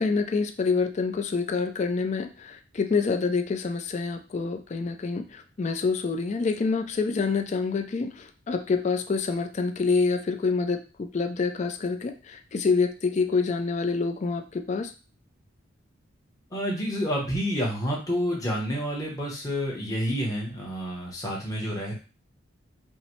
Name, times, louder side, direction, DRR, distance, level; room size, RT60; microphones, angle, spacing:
voice 1, 0.0-14.9, left 4 dB, 35° left, 6 dB, 0.3 m, -27 dB
voice 2, 16.5-21.9, equal, 15° left, -3 dB, 0.8 m, -29 dB
5.5 x 2.0 x 3.0 m, 0.33 s
head